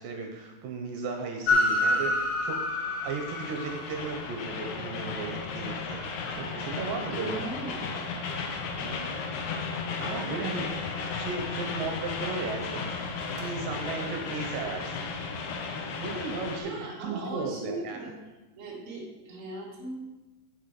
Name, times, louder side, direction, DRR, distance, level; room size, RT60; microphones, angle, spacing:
voice 1, 0.0-6.0 6.4-7.3 8.8-9.0 10.0-15.0 15.4-15.6 16.0-16.7 17.0-18.0, right 4 dB, 70° right, 3 dB, 2.4 m, -36 dB
Train, 1.5-16.6, left 3 dB, 70° left, 1.9 m, -32 dB
voice 2, 7.1-8.0 16.2-18.1 18.6-20.0, right 2 dB, 30° right, -4 dB, 1.4 m, -39 dB
sound 1, 8.2-8.6 9.0-9.1 12.8-13.6, right 3 dB, 55° right, 1.8 m, -47 dB
8.2 x 7.3 x 5.2 m, 1.1 s
omnidirectional pair, 4.4 m